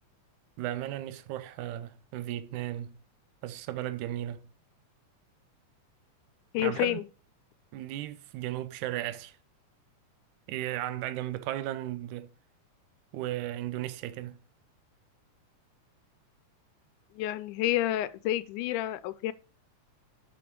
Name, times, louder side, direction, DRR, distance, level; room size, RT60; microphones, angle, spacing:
voice 1, 0.6-3.0 3.4-4.5 6.6-7.0 7.7-9.4 10.5-12.3 13.1-14.4, right 13 dB, 80° right, 2.1 m, -35 dB
voice 2, 6.5-7.0 17.2-19.3, left 14 dB, 90° left, 2.1 m, -29 dB
6.0 x 5.3 x 6.0 m
omnidirectional pair, 3.5 m